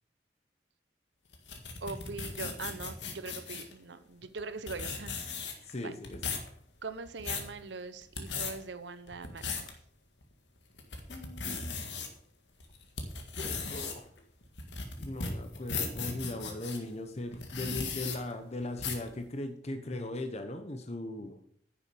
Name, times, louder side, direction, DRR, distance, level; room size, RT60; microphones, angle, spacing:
sound 1, 1.3-3.7 4.4-4.5 4.7-5.7 6.0-6.5 7.0-7.5 8.0-8.5 9.1-9.7 10.2-10.3 10.8-12.1 12.6-16.8 17.3-18.2 18.8-19.1, left 5 dB, 90° left, 1.9 m, -37 dB
voice 1, 1.8-5.9 6.8-9.6, right 4 dB, 85° right, 11 dB, 0.9 m, -42 dB
voice 2, 5.6-6.4 11.1-11.8 13.4-14.1 15.0-21.4, left 1 dB, 40° left, 7 dB, 0.9 m, -39 dB
9.9 x 7.0 x 6.8 m, 0.66 s
head